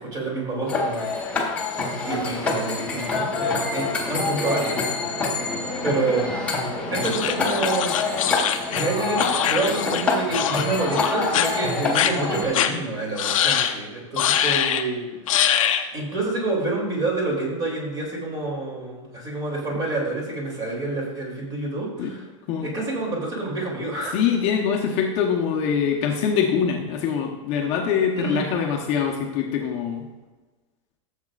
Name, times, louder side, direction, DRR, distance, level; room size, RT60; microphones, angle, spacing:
voice 1, 0.0-1.2 2.0-4.8 5.8-6.3 6.9-7.9 8.7-15.0 15.9-22.3 22.6-24.2 28.1-28.4, right 2 dB, 25° right, -2 dB, 2.9 m, -28 dB
sound 1, 0.7-12.4, left 3 dB, 5° left, 1.4 m, -26 dB
sound 2, 7.0-10.0 10.3-10.7 10.9-11.5 11.9-12.1 12.5-12.7 13.2-13.7 14.2-14.8 15.3-15.9, left 10 dB, 85° left, 0.9 m, -23 dB
voice 2, 24.1-30.1, left 7 dB, 35° left, 1 dB, 1.0 m, -23 dB
15.0 x 7.4 x 2.5 m, 1.2 s
supercardioid pair, 160°, 17 cm